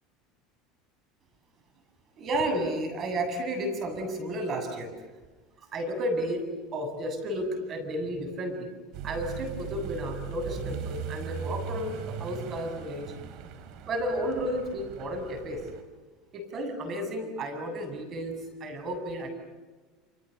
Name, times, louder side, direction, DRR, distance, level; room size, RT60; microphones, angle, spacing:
voice 1, 2.2-4.9 5.7-6.4 6.7-8.7 9.0-13.1 13.9-15.6 16.3-19.3, right 1 dB, 40° right, 7 dB, 7.8 m, -32 dB
Accelerating revving vroom, 8.9-15.8, right 7 dB, 60° right, 4.0 m, -39 dB
28.5 x 27.5 x 6.8 m, 1.3 s
supercardioid pair, 115°, 0 cm